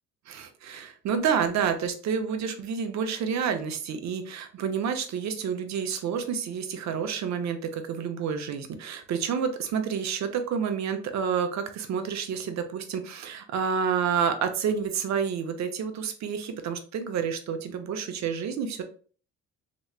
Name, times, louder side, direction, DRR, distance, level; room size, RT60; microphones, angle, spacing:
voice 1, 0.3-18.8, right 7 dB, 65° right, 7 dB, 0.7 m, -29 dB
3.1 x 3.0 x 2.3 m, 0.41 s
cardioid pair, 90°, 30 cm